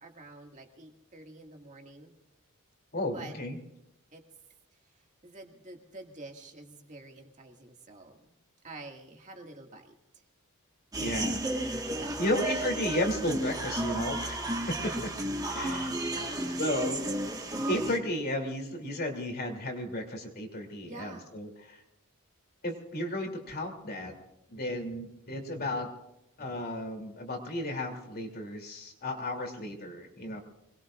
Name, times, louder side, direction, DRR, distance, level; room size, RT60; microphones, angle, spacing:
voice 1, 0.0-2.1 3.1-3.4 4.1-4.2 4.7-10.2 12.0-12.3 16.2-16.7 20.9-21.3, right 2 dB, 35° right, 2 dB, 2.2 m, -48 dB
voice 2, 2.9-3.6 11.0-11.4 12.2-15.1 15.5-15.9 16.6-17.0 17.7-21.8 22.6-24.1 24.5-25.9 26.4-30.4, left 1 dB, 45° left, 3 dB, 3.1 m, -33 dB
sound 1, 10.9-18.0, right 1 dB, 15° right, 1.6 m, -33 dB
26.0 x 21.0 x 2.6 m, 0.84 s
head